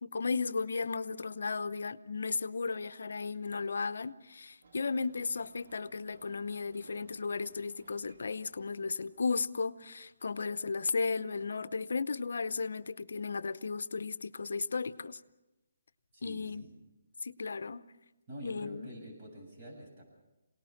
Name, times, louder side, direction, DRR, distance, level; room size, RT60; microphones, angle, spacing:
voice 1, 0.0-15.2 16.2-16.6 17.2-17.9 18.4-18.9, left 4 dB, 75° left, 0.7 m, -35 dB
Ocean, 4.6-9.5, right 3 dB, 60° right, 2.5 m, -61 dB
voice 2, 16.1-16.7 18.3-20.0, equal, 30° right, 7.5 m, -47 dB
27.0 x 18.5 x 5.9 m
hypercardioid pair, 165°, 0 cm